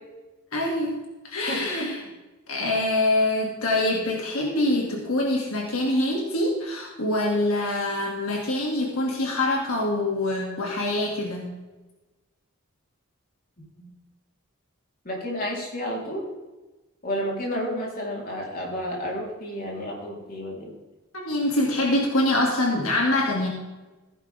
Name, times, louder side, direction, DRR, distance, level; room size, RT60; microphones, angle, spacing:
voice 1, 0.5-0.9 1.2-2.0 2.5-11.5 21.2-23.5, left 1 dB, 75° left, -1 dB, 2.5 m, -24 dB
voice 2, 15.0-16.3 17.0-20.7, equal, 45° left, -2 dB, 3.8 m, -31 dB
15.5 x 10.5 x 3.6 m, 1.1 s
head